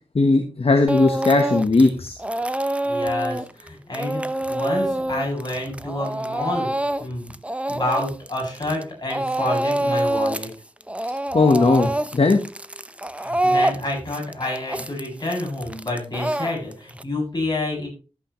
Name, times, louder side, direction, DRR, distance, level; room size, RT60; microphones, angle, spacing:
voice 1, 0.1-2.2 11.3-12.4, left 3 dB, 60° left, 5 dB, 1.4 m, -18 dB
Speech / Crying sobbing, 0.9-1.9 2.2-8.8 9.1-10.5 10.8-17.0, right 1 dB, 10° right, 0.7 m, -26 dB
voice 2, 2.8-7.3 7.7-10.5 13.2-17.9, left 1 dB, 40° left, -2 dB, 7.6 m, -28 dB
14.5 x 8.5 x 3.2 m, 0.32 s
wide cardioid pair, 75°, 11 cm